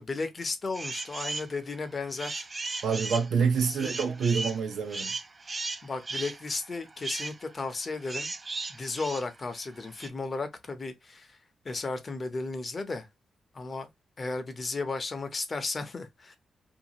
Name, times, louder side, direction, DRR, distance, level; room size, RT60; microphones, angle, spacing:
voice 1, 0.0-2.5 2.7-2.8 3.7-3.9 5.8-8.3 8.7-11.3 11.6-13.1 13.5-13.9 14.2-16.4, left 3 dB, 35° left, 0.7 m, -34 dB
sound 1, 0.7-1.5 1.9-10.1, right 3 dB, 30° right, 0.4 m, -37 dB
voice 2, 2.8-5.1, right 6 dB, 75° right, 0.7 m, -27 dB
2.6 x 2.3 x 2.8 m
cardioid pair, 95°, 0 cm